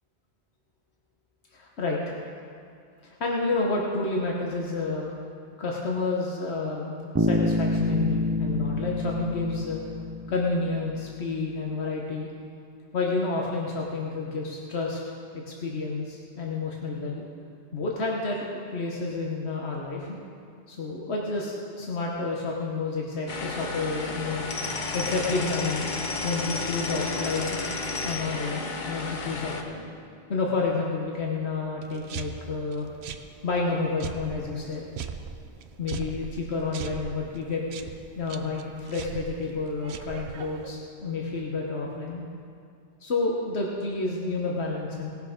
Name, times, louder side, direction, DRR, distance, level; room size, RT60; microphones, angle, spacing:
voice 1, 1.5-2.2 3.0-5.1 5.6-9.8 10.3-12.3 12.9-15.0 15.3-17.3 17.7-18.5 18.7-20.1 20.7-24.5 24.9-25.9 26.2-27.6 28.0-29.8 30.3-32.9 33.4-34.8 35.8-37.6 38.2-42.2 43.0-45.1, left 3 dB, 85° left, -2 dB, 1.4 m, -30 dB
Bass guitar, 7.2-10.9, left 1 dB, 20° right, 0.4 m, -27 dB
sound 1, 23.3-29.6, left 3 dB, 50° left, 1.0 m, -32 dB
sound 2, 31.8-40.7, right 7 dB, 80° right, 0.9 m, -40 dB
19.0 x 6.5 x 5.1 m, 2.4 s
omnidirectional pair, 1.1 m